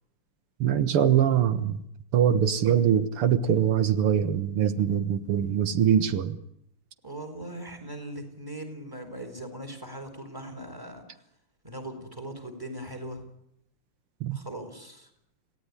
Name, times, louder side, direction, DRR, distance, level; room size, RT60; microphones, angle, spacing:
voice 1, 0.6-1.8 2.1-6.4 14.2-14.4, right 9 dB, 85° right, 11 dB, 2.3 m, -23 dB
voice 2, 7.0-11.2 11.6-13.2 14.3-15.1, right 1 dB, 10° right, 5 dB, 4.5 m, -40 dB
27.5 x 17.0 x 9.9 m, 0.77 s
omnidirectional pair, 2.4 m